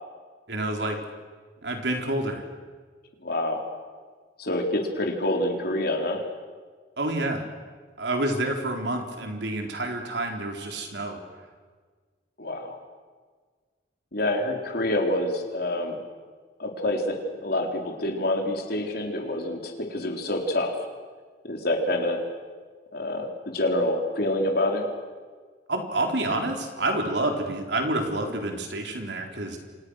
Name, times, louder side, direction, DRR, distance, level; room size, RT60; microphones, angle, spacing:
voice 1, 0.5-1.0 1.6-2.4 7.0-7.4 8.0-11.2 25.7-29.6, right 2 dB, 65° right, 3 dB, 4.0 m, -28 dB
voice 2, 3.2-3.6 4.4-6.2 12.4-12.8 14.1-16.0 16.6-20.7 21.4-22.2 22.9-24.9, left 1 dB, 55° left, 2 dB, 4.0 m, -27 dB
29.5 x 26.0 x 6.5 m, 1.5 s
head